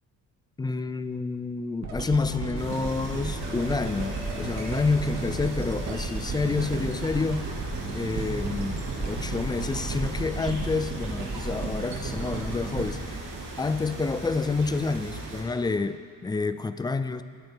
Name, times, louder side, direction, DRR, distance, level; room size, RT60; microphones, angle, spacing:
voice 1, 0.6-7.5 7.9-13.2 13.6-17.2, left 4 dB, 15° left, 12 dB, 0.3 m, -29 dB
sound 1, 1.8-14.0 14.6-14.7, right 3 dB, 60° right, 2.0 m, -34 dB
sound 2, 2.5-15.4, right 2 dB, 75° right, 2.7 m, -38 dB
19.5 x 9.2 x 3.5 m, 2.1 s
cardioid pair, 130°, 32 cm